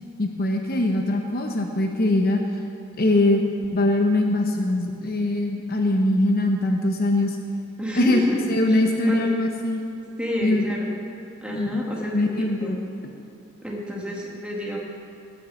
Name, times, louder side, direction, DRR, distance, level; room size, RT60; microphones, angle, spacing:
voice 1, 0.2-2.4 3.0-3.4 3.7-7.4 7.9-8.2 8.5-9.8 10.4-10.6 11.5-12.8, left 1 dB, 45° left, 3 dB, 0.9 m, -22 dB
voice 2, 7.8-8.4 8.7-8.8 9.1-9.3 10.2-10.9 11.4-12.3 12.6-12.7 13.6-14.8, left 1 dB, 5° right, -3 dB, 2.0 m, -29 dB
18.0 x 7.2 x 6.4 m, 2.7 s
head